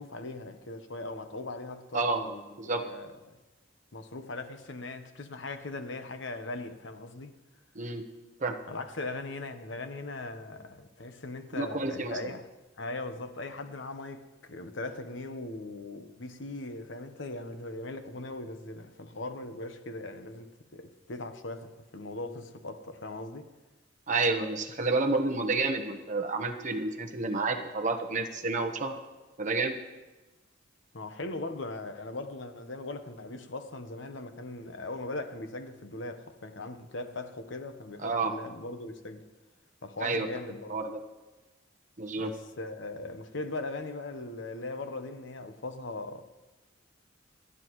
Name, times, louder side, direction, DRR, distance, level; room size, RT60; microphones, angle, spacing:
voice 1, 0.0-3.2 3.9-7.3 8.7-12.5 12.8-23.5 30.9-39.2 39.8-40.7 42.2-46.2, left 2 dB, 70° left, 1.1 m, -39 dB
voice 2, 11.5-12.2 24.1-29.0 29.4-29.8 38.0-38.3 40.0-40.3 40.7-41.0 42.0-42.3, right 3 dB, 40° right, 1.1 m, -29 dB
28.5 x 10.0 x 3.1 m
head